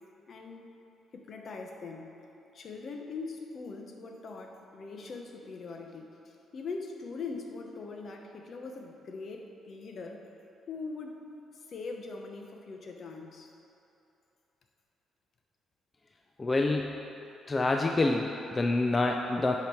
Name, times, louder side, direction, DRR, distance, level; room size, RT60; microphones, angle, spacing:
voice 1, 0.3-0.7 1.1-2.2 2.5-6.1 6.5-10.2 10.7-11.3 11.7-13.5, left 4 dB, 55° left, 3 dB, 0.9 m, -41 dB
voice 2, 16.4-17.0 17.5-19.5, left 2 dB, 25° left, 2 dB, 0.4 m, -27 dB
10.5 x 5.1 x 4.5 m, 2.9 s
cardioid pair, 90°, 0 cm